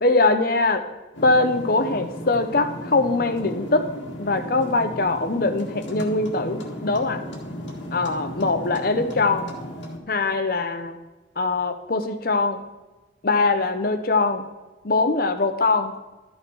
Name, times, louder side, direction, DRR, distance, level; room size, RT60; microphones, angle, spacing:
voice 1, 0.0-0.8 1.2-3.9 4.2-7.3 7.9-9.5 10.1-11.0 11.4-12.6 13.2-14.5 14.8-16.1, left 3 dB, 50° left, 8 dB, 0.7 m, -22 dB
sound 1, 1.1-10.0, equal, 75° left, 1.7 m, -35 dB
12.5 x 6.5 x 4.6 m, 1.1 s
head